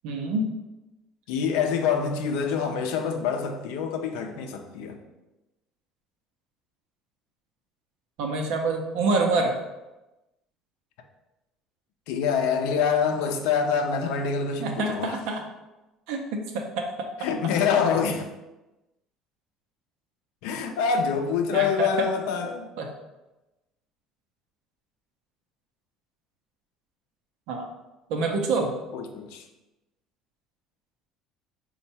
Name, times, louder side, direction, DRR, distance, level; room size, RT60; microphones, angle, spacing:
voice 1, 0.0-0.5 8.2-9.5 14.6-15.4 16.1-17.1 21.5-22.1 22.8-22.9 27.5-27.6 28.1-28.7, right 3 dB, 80° right, 3 dB, 0.7 m, -26 dB
voice 2, 1.3-5.0 12.1-15.2 17.2-18.3 20.4-22.7 28.2-28.4 28.9-29.4, left 6 dB, 85° left, 5 dB, 0.5 m, -26 dB
4.4 x 2.3 x 4.1 m, 1.0 s
supercardioid pair, 105°, 0 cm